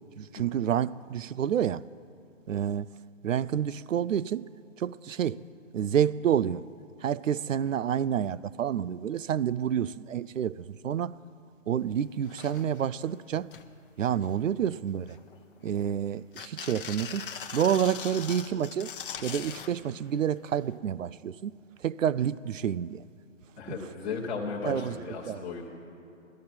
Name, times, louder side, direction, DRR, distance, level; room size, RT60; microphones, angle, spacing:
voice 1, 0.2-1.8 2.5-2.9 3.2-4.5 4.8-5.4 5.7-6.7 7.0-11.2 11.7-13.5 14.0-15.2 15.6-17.3 17.5-18.9 19.2-21.5 21.8-23.0 23.7-23.8 24.6-25.0 25.2-25.4, right 9 dB, 75° right, 19 dB, 0.5 m, -29 dB
sound 1, 11.9-12.0 12.2-12.9 13.3-13.7 14.1-14.6 15.1-15.9 16.3-19.7 20.8-20.9, left 7 dB, 45° left, 0.9 m, -41 dB
voice 2, 23.6-25.7, left 4 dB, 15° left, -5 dB, 1.3 m, -35 dB
17.5 x 13.0 x 4.4 m, 2.7 s
figure-of-eight pair, 145°, 39 cm